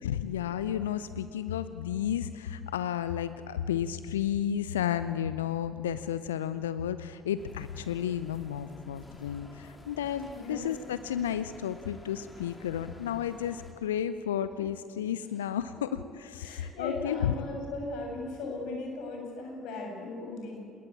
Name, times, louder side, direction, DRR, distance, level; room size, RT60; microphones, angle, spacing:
voice 1, 0.0-10.2 10.5-17.3, left 10 dB, 75° left, 13 dB, 0.7 m, -32 dB
sound 1, 7.4-13.7, left 1 dB, 20° left, 4.3 m, -50 dB
voice 2, 10.0-10.6 16.4-20.6, left 2 dB, 60° left, 1 dB, 7.9 m, -37 dB
26.5 x 21.5 x 8.6 m, 2.2 s
figure-of-eight pair, 55°, 0 cm